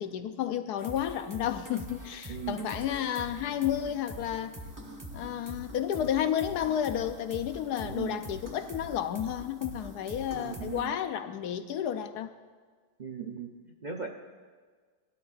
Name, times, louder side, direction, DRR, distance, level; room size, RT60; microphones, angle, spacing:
voice 1, 0.0-4.5 5.1-12.3, left 10 dB, 75° left, 9 dB, 1.1 m, -31 dB
sound 1, 0.8-10.9, equal, 15° right, 1.0 m, -44 dB
voice 2, 2.3-2.7 7.8-8.2 10.3-10.9 13.0-14.1, right 7 dB, 45° right, 1 dB, 0.6 m, -38 dB
19.0 x 12.5 x 2.5 m, 1.6 s
omnidirectional pair, 1.8 m